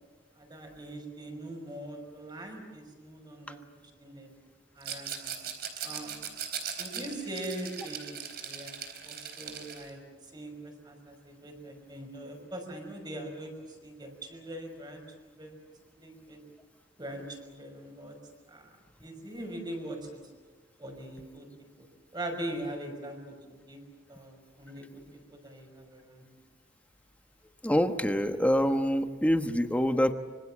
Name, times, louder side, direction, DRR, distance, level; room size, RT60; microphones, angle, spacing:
voice 1, 0.3-3.6 4.0-4.3 4.7-5.4 5.8-6.2 6.8-10.0 10.3-15.5 16.0-16.4 17.0-18.2 18.5-18.7 19.0-20.2 20.8-21.5 22.1-23.8 24.1-26.3, right 1 dB, 25° right, 3 dB, 5.8 m, -42 dB
Rattle, 4.8-9.9, right 8 dB, 60° right, 4.1 m, -39 dB
voice 2, 27.6-30.1, equal, 10° left, 7 dB, 1.3 m, -25 dB
25.5 x 25.0 x 7.5 m, 1.4 s
head